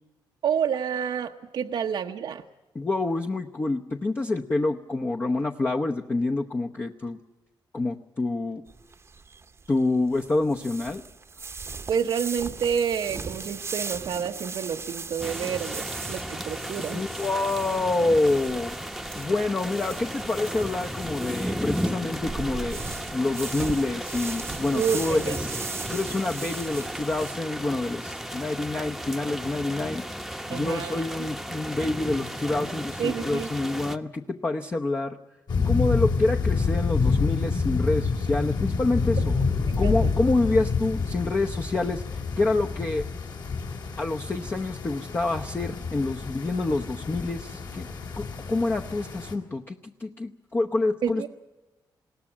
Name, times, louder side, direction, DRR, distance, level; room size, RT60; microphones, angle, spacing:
voice 1, 0.4-2.4 11.9-17.0 24.7-25.4 30.5-31.2 33.0-33.5 39.7-39.9 51.0-51.3, right 7 dB, 70° right, 5 dB, 0.9 m, -29 dB
voice 2, 2.7-7.2 7.7-8.6 9.7-11.0 16.9-18.8 19.1-22.8 23.1-25.6 25.9-30.0 30.5-35.2 35.6-39.4 39.8-43.1 44.0-47.9 48.2-51.2, left 2 dB, 25° left, 2 dB, 0.9 m, -27 dB
sound 1, 8.7-27.3, right 4 dB, 35° right, 0.9 m, -38 dB
sound 2, 15.2-34.0, equal, ahead, 1.0 m, -34 dB
sound 3, 35.5-49.3, left 4 dB, 60° left, 3.5 m, -28 dB
21.0 x 17.0 x 8.7 m, 1.1 s
cardioid pair, 115°, 8 cm